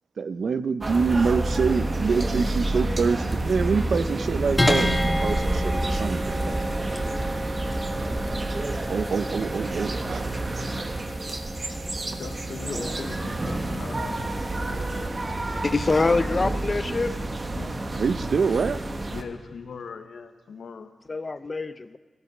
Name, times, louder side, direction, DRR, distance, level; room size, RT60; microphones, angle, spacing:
voice 1, 0.2-6.6 8.9-10.2 10.6-10.7 18.0-18.8, right 5 dB, 70° right, 13 dB, 0.5 m, -25 dB
sound 1, 0.8-19.2, right 2 dB, 40° right, 1.2 m, -29 dB
sound 2, 4.6-15.1, equal, 15° left, 1.8 m, -31 dB
voice 2, 12.1-15.1 16.0-16.7 17.5-17.8 19.1-20.9, left 5 dB, 80° left, 8 dB, 0.9 m, -40 dB
voice 3, 15.5-17.1 21.1-22.0, left 3 dB, 40° left, 13 dB, 0.6 m, -25 dB
15.0 x 9.6 x 6.0 m, 1.4 s
cardioid pair, 60°, 0 cm